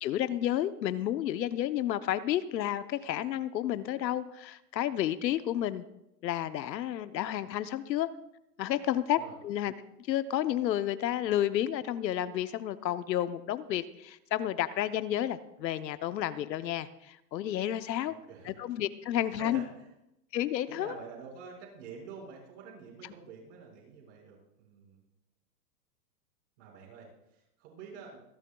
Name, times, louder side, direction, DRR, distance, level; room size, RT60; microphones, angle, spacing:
voice 1, 0.0-5.9 6.2-8.1 8.6-9.7 10.1-18.2 18.5-19.6 20.3-20.9, left 12 dB, 80° left, 12 dB, 0.9 m, -31 dB
voice 2, 18.0-18.5 19.3-19.9 20.7-25.0 26.6-28.2, right 5 dB, 45° right, -2 dB, 5.6 m, -48 dB
26.0 x 11.5 x 2.3 m, 0.88 s
supercardioid pair, 170°, 50 cm